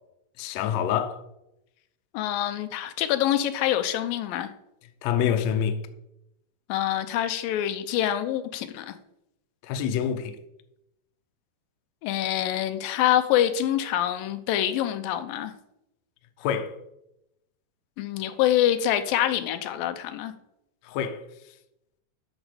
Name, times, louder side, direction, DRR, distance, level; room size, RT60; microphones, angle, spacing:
voice 1, 0.4-1.2 5.0-5.8 9.6-10.4 16.4-16.7 20.8-21.2, left 8 dB, 70° left, 1.7 m, -26 dB
voice 2, 2.1-4.5 6.7-9.0 12.0-15.5 18.0-20.3, left 11 dB, 90° left, 2.5 m, -25 dB
12.0 x 6.3 x 5.0 m
omnidirectional pair, 4.0 m